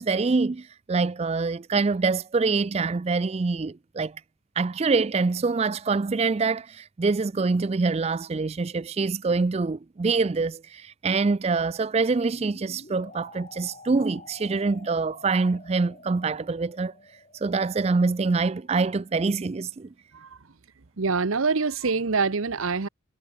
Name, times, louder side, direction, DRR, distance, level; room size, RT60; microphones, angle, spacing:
voice 1, 0.0-4.2 4.6-16.9 17.4-19.9, right 4 dB, 30° right, 0.4 m, -25 dB
sound 1, 12.3-19.2, left 2 dB, 35° left, 5.5 m, -50 dB
voice 2, 21.0-22.9, right 4 dB, 80° right, 0.9 m, -25 dB
head